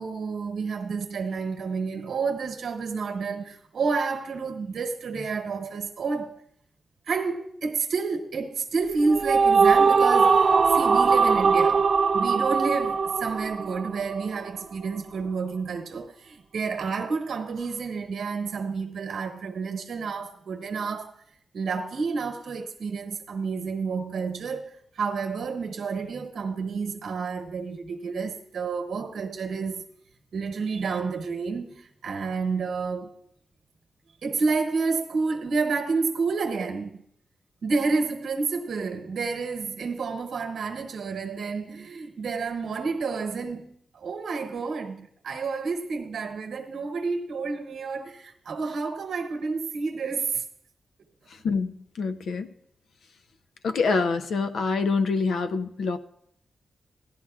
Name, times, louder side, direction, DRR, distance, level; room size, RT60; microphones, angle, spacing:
voice 1, 0.0-6.4 7.1-11.9 12.1-21.1 21.5-29.8 30.3-33.1 34.2-37.0 37.6-50.4, right 4 dB, 75° right, 1.1 m, -30 dB
sound 1, 8.9-14.4, right 5 dB, 50° right, 0.5 m, -21 dB
voice 2, 51.4-52.5 53.6-56.0, left 4 dB, 85° left, 0.5 m, -26 dB
16.0 x 11.0 x 2.4 m
wide cardioid pair, 165°, 0 cm